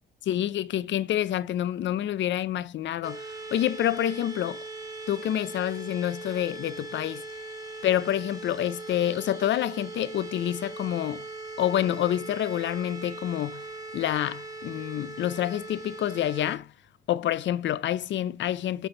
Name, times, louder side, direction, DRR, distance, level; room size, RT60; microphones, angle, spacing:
voice 1, 0.3-4.6 5.1-7.2 7.8-11.2 11.6-13.6 13.9-16.7 17.1-18.9, left 12 dB, 65° left, 0.6 m, -28 dB
sound 1, 3.0-16.6, right 3 dB, 20° right, 2.9 m, -40 dB
6.8 x 4.5 x 5.4 m
cardioid pair, 90°, 20 cm